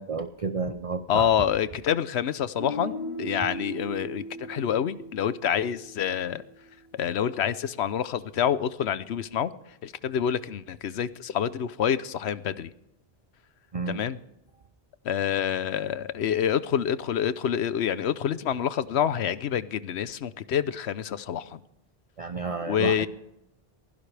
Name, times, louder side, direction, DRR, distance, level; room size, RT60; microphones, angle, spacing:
voice 1, 0.0-1.3 13.7-14.0 22.2-23.1, right 4 dB, 40° right, 0.7 m, -31 dB
voice 2, 1.1-6.4 6.9-9.5 9.8-12.7 13.9-14.2 15.0-21.6 22.7-23.1, left 9 dB, 85° left, 1.0 m, -27 dB
Guitar, 2.6-6.5, right 1 dB, 65° left, 5.4 m, -38 dB
22.5 x 16.0 x 3.4 m
omnidirectional pair, 1.1 m